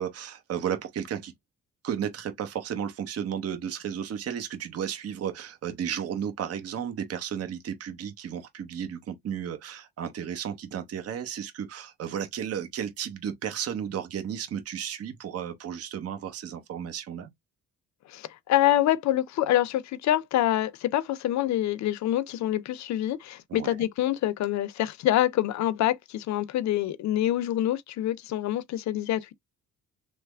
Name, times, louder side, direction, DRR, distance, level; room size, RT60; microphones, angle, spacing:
voice 1, 0.0-1.3 1.8-17.3 23.5-23.8, right 8 dB, 50° right, 0.8 m, -33 dB
voice 2, 18.1-29.3, left 13 dB, 65° left, 0.5 m, -26 dB
3.2 x 2.0 x 3.3 m
cardioid pair, 90°, 30 cm